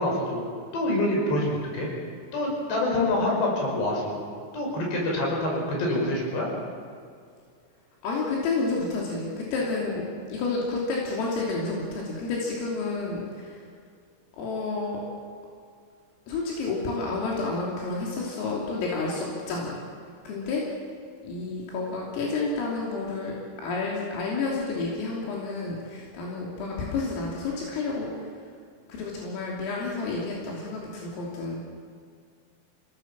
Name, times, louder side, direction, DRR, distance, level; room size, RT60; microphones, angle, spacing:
voice 1, 0.0-1.9 2.3-4.2 4.5-6.5, left 1 dB, 55° left, -1 dB, 7.7 m, -26 dB
voice 2, 8.0-10.0 10.3-13.6 14.4-15.0 16.3-19.8 20.3-20.6 21.2-28.2 28.9-31.6, left 3 dB, 80° left, -3 dB, 5.7 m, -30 dB
28.0 x 18.0 x 7.4 m, 2.2 s
omnidirectional pair, 5.8 m